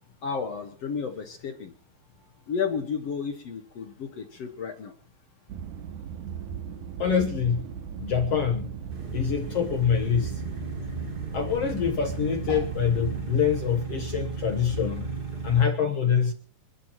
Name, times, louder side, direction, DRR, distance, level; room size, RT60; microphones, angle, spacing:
voice 1, 0.2-1.7 2.5-4.9 12.5-12.6, left 6 dB, 55° left, 6 dB, 1.8 m, -32 dB
sound 1, 5.5-13.2, right 8 dB, 70° right, 2.0 m, -37 dB
voice 2, 7.0-7.7 8.0-8.7 9.1-10.4 11.3-15.1 15.4-16.3, left 7 dB, 75° left, 4 dB, 1.4 m, -25 dB
sound 2, 8.9-15.7, right 3 dB, 30° right, 1.0 m, -35 dB
28.0 x 11.0 x 3.0 m, 0.41 s
omnidirectional pair, 4.6 m